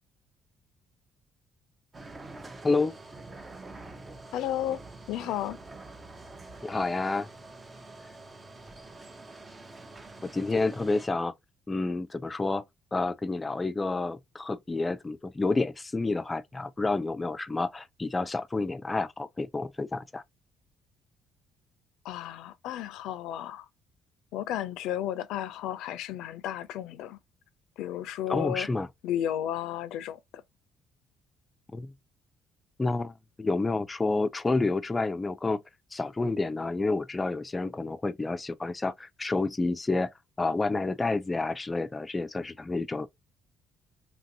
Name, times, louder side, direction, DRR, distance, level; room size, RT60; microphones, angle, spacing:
sound 1, 1.9-11.1, right 2 dB, 25° right, 0.6 m, -46 dB
voice 1, 2.6-3.0 6.6-7.3 10.2-11.3 11.7-12.6 12.9-20.2 28.3-28.9 31.7-31.9 32.8-35.6 35.9-40.1 40.4-43.1, left 3 dB, 20° left, 0.4 m, -29 dB
voice 2, 4.3-4.8 5.1-5.6 22.0-23.6 24.3-27.2 27.8-28.7 29.0-30.2, left 11 dB, 85° left, 0.4 m, -33 dB
2.9 x 2.6 x 2.7 m
cardioid pair, 100°, 0 cm